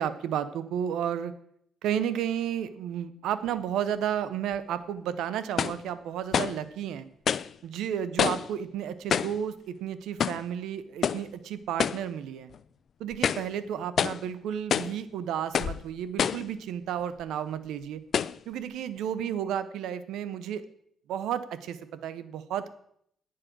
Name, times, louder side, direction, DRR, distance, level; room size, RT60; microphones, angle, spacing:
voice 1, 0.0-1.3 1.8-7.1 7.6-12.5 13.0-18.0 18.5-20.6 21.1-22.7, right 9 dB, 85° right, 13 dB, 0.8 m, -32 dB
sound 1, 4.5-4.6 5.6-5.8 6.3-6.6 7.3-7.5 8.2-8.5 9.1-9.4 10.2-10.5 11.0-11.3 11.8-12.1 12.5-12.6 13.1-13.5 14.0-14.2 14.7-15.0 15.5-15.8 16.2-16.5 17.2-17.3 18.1-18.4, left 8 dB, 55° left, 0.4 m, -27 dB
10.0 x 7.5 x 6.1 m, 0.69 s
cardioid pair, 90°, 0 cm